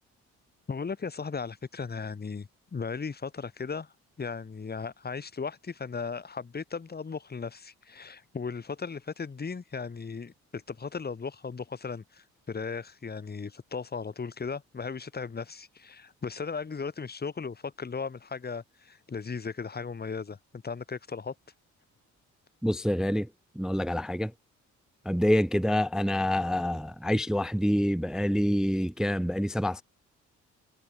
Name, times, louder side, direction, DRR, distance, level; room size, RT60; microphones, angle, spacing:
voice 1, 0.7-3.9 4.2-21.3, left 5 dB, 30° left, 3.5 m, -36 dB
voice 2, 22.6-23.3 23.6-24.3 25.1-29.8, equal, ahead, 0.3 m, -26 dB
cardioid pair, 90°, 30 cm